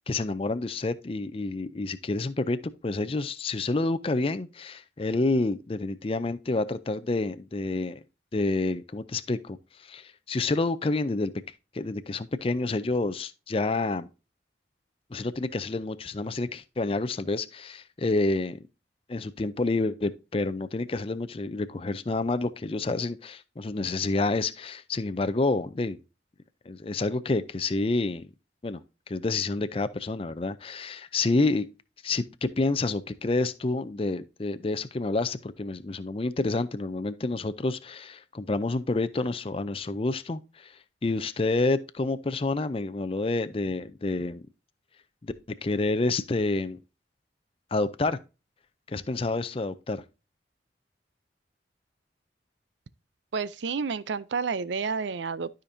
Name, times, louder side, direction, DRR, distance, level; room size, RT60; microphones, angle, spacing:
voice 1, 0.1-8.0 8.3-11.3 11.7-14.1 15.1-18.6 19.1-26.0 26.7-28.3 28.6-28.8 29.1-31.7 32.0-44.4 45.2-46.8 47.7-48.2 48.9-50.0, left 2 dB, 30° left, 0.5 m, -28 dB
voice 2, 53.3-55.5, right 5 dB, 85° right, 0.5 m, -30 dB
12.5 x 5.1 x 2.7 m
head